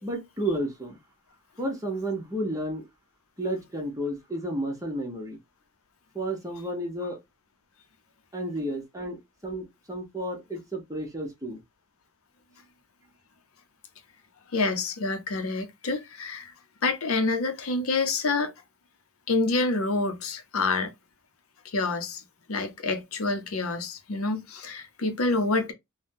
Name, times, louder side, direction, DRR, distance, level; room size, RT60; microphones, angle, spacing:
voice 1, 0.0-1.0 1.6-2.9 3.4-5.4 6.1-7.2 8.3-9.2 9.4-11.6, right 1 dB, 15° right, 1.0 m, -32 dB
voice 2, 14.5-16.5 16.8-18.5 19.3-20.9 21.6-22.2 22.5-25.7, left 3 dB, 70° left, 0.7 m, -27 dB
3.5 x 2.2 x 2.6 m
head